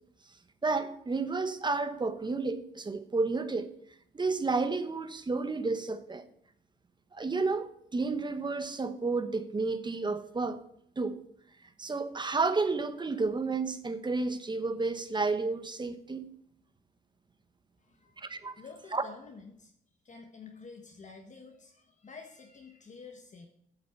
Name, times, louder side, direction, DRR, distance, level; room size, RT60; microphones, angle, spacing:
voice 1, 0.6-3.7 4.1-6.2 7.1-10.6 11.0-11.2 11.8-16.3 18.2-18.5 18.9-19.0, right 3 dB, 20° right, 1.0 m, -31 dB
voice 2, 17.8-18.2 18.6-19.7 20.0-23.5, left 4 dB, 40° left, 1.4 m, -49 dB
8.6 x 7.4 x 5.9 m
cardioid pair, 90°, 20 cm